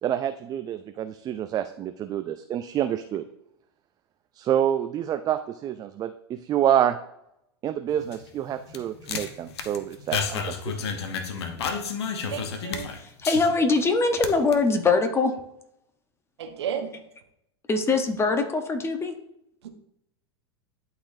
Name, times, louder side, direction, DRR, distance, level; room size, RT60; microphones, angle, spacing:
voice 1, 0.0-3.3 4.3-7.0 7.6-10.7, right 10 dB, 25° right, 9 dB, 0.4 m, -27 dB
sound 1, 7.9-13.8 14.1-14.5, left 6 dB, 70° left, 1.0 m, -32 dB
voice 2, 12.3-12.9 16.4-17.0 19.6-19.7, right 8 dB, 75° right, 7 dB, 0.9 m, -33 dB
voice 3, 12.9-15.3 17.7-19.1, left 3 dB, 20° left, 6 dB, 1.0 m, -23 dB
11.5 x 4.1 x 2.7 m, 0.80 s
hypercardioid pair, 100°, 14 cm